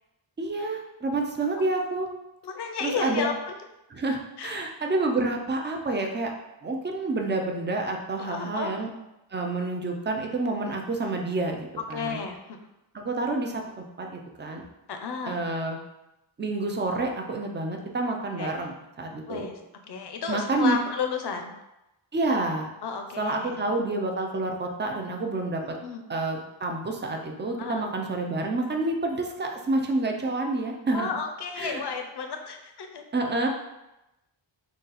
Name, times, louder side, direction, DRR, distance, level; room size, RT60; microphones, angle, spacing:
voice 1, 0.4-2.1 2.8-3.3 3.9-6.3 6.6-8.9 9.3-12.2 12.9-14.6 15.3-15.8 16.4-19.5 20.3-20.8 22.1-22.7 23.2-25.6 26.1-31.1 31.6-31.8 33.1-33.5, right 2 dB, 25° right, 2 dB, 0.3 m, -28 dB
voice 2, 2.4-3.5 4.4-4.6 8.2-8.7 11.9-12.6 14.9-15.4 18.4-18.5 19.3-19.6 19.9-21.5 22.8-23.6 25.6-26.0 27.6-27.9 30.9-33.0, left 5 dB, 55° left, 5 dB, 0.5 m, -32 dB
3.9 x 2.4 x 3.9 m, 0.93 s
wide cardioid pair, 175°, 49 cm